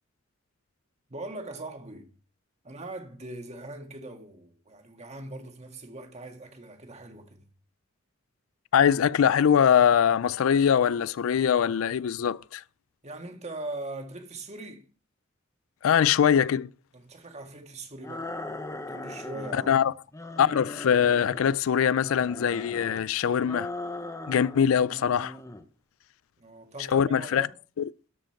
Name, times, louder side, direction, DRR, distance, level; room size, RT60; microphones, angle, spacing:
voice 1, 1.1-2.1 2.6-7.4 13.0-14.9 16.9-18.3 18.8-19.7 26.4-27.5, right 2 dB, 35° right, 1.8 m, -40 dB
voice 2, 8.7-12.6 15.8-16.7 19.5-19.9 20.4-23.7 24.3-25.4 26.9-27.5 27.8-27.9, left 8 dB, 85° left, 0.4 m, -22 dB
sound 1, 18.0-19.8 20.1-21.6 22.0-23.0 23.4-24.6 24.9-25.6, left 2 dB, 15° left, 0.8 m, -39 dB
13.0 x 5.3 x 5.7 m
head